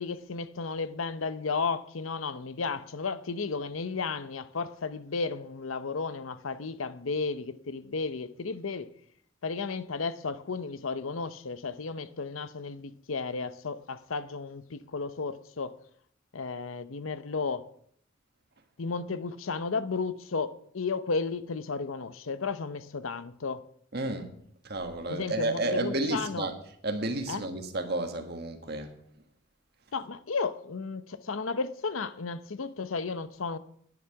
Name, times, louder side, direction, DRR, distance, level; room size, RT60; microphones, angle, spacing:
voice 1, 0.0-8.9 9.4-15.7 16.3-17.6 18.8-23.6 25.1-26.5 27.3-27.5 29.9-33.6, left 4 dB, 80° left, 0.7 m, -33 dB
voice 2, 23.9-24.3 24.6-26.5 26.8-28.9, right 2 dB, 50° right, 1.6 m, -31 dB
10.5 x 10.5 x 5.9 m
head